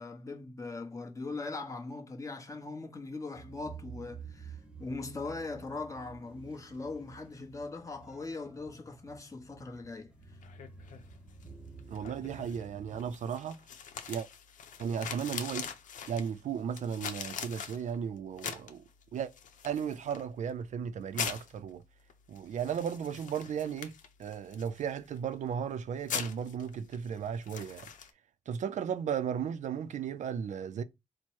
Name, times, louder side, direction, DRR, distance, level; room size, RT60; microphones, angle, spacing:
voice 1, 0.0-10.4, left 3 dB, 25° left, 1.0 m, -40 dB
sound 1, 3.4-13.1, right 5 dB, 10° right, 0.7 m, -51 dB
sound 2, 10.1-28.1, left 7 dB, 85° left, 0.6 m, -44 dB
voice 2, 11.9-13.6 14.1-14.3 14.8-15.7 16.1-18.8 19.1-19.3 19.6-21.8 22.3-27.9 28.5-30.8, right 7 dB, 70° right, 0.4 m, -35 dB
4.4 x 2.1 x 4.5 m
wide cardioid pair, 135°, 13 cm